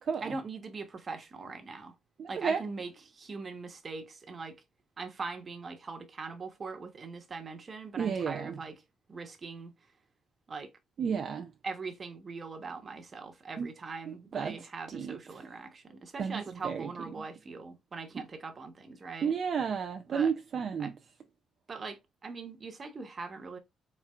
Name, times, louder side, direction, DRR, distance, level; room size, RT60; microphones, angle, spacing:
voice 1, 0.2-1.9 2.3-4.6 5.0-8.8 9.1-9.9 10.5-10.7 11.6-19.4 20.1-20.3 20.8-20.9 21.7-23.6, right 4 dB, 40° right, 1.2 m, -41 dB
voice 2, 2.2-2.6 8.0-8.6 11.0-11.5 13.6-13.7 14.1-14.6 14.9-15.2 16.2-16.9 19.2-20.9, right 6 dB, 55° right, 0.5 m, -32 dB
4.4 x 3.6 x 2.4 m
cardioid pair, 90°, 0 cm